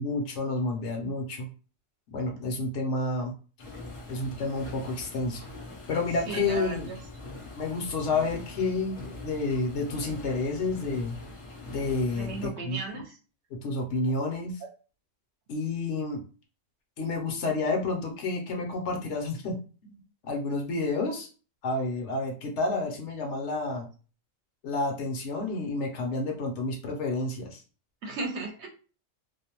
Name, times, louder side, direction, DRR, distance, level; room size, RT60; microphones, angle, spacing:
voice 1, 0.0-1.5 2.1-3.3 4.1-5.4 5.9-6.9 7.6-11.2 11.7-13.0 13.5-14.6 15.5-16.2 17.0-19.6 19.8-21.3 21.6-23.9 24.6-27.6, left 3 dB, 70° left, 2 dB, 0.9 m, -30 dB
sound 1, 3.6-12.5, left 2 dB, 40° left, 0.4 m, -43 dB
voice 2, 6.3-7.0 12.1-13.2 28.0-28.7, right 3 dB, 70° right, 1 dB, 0.9 m, -35 dB
2.5 x 2.0 x 2.8 m, 0.37 s
omnidirectional pair, 1.3 m